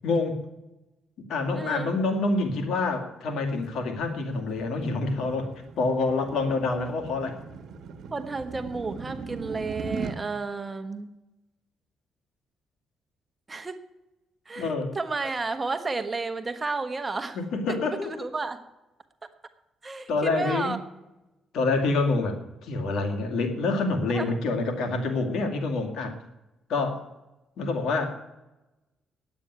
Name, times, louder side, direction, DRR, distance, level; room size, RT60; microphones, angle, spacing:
voice 1, 0.0-0.4 1.3-5.5 5.8-7.4 14.6-14.9 17.4-18.1 20.1-20.8 21.5-26.2 26.7-27.1 27.6-28.2, left 3 dB, 75° left, 5 dB, 2.3 m, -27 dB
voice 2, 1.5-1.9 8.1-11.1 13.5-13.8 14.5-17.4 17.7-18.6 19.8-20.8 24.1-24.3, right 3 dB, 25° right, 8 dB, 1.2 m, -32 dB
sound 1, 3.7-10.2, right 5 dB, 70° right, 1.2 m, -39 dB
9.5 x 8.8 x 9.4 m, 0.97 s
cardioid pair, 90°, 0 cm